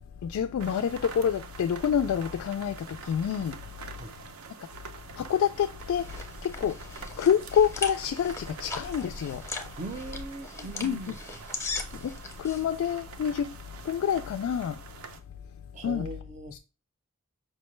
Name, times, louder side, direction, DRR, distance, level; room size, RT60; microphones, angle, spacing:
voice 1, 0.2-3.6 5.2-6.1 6.4-6.8 7.2-9.4 10.8-11.0 11.9-13.5 13.8-14.8 15.8-16.1 16.5-16.6, left 8 dB, 85° left, 0.3 m, -27 dB
sound 1, 0.6-15.2, right 5 dB, 85° right, 0.5 m, -46 dB
sound 2, 5.5-12.6, left 3 dB, 15° left, 0.6 m, -39 dB
voice 2, 9.8-11.2 15.7-16.6, right 2 dB, 35° right, 0.5 m, -39 dB
5.1 x 2.1 x 3.0 m
head